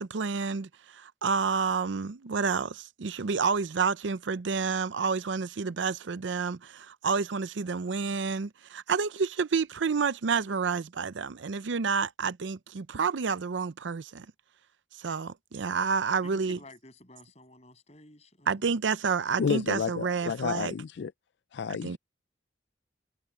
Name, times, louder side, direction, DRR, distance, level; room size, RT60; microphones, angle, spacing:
voice 1, 0.0-14.3 15.0-16.6 18.5-20.7 21.8-22.0, right 5 dB, 85° right, 0.6 m, -29 dB
voice 2, 16.2-18.7, left 1 dB, 35° left, 6.8 m, -52 dB
voice 3, 19.4-21.1 21.5-22.0, left 6 dB, 75° left, 0.4 m, -30 dB
head